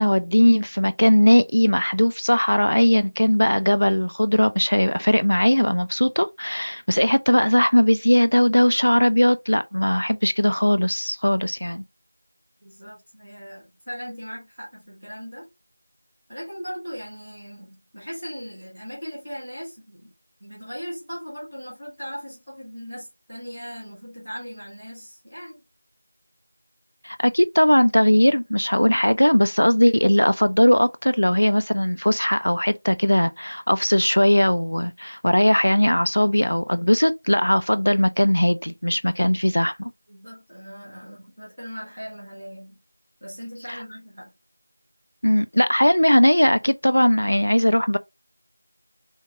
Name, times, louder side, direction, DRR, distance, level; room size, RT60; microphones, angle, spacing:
voice 1, 0.0-11.8 27.0-39.9 45.2-48.0, equal, 70° left, 0.3 m, -19 dB
voice 2, 12.6-15.5 16.3-20.1 20.4-25.6 40.1-42.8 43.2-44.3, equal, 5° right, 1.1 m, -38 dB
3.5 x 3.5 x 3.0 m
figure-of-eight pair, 180°, 0 cm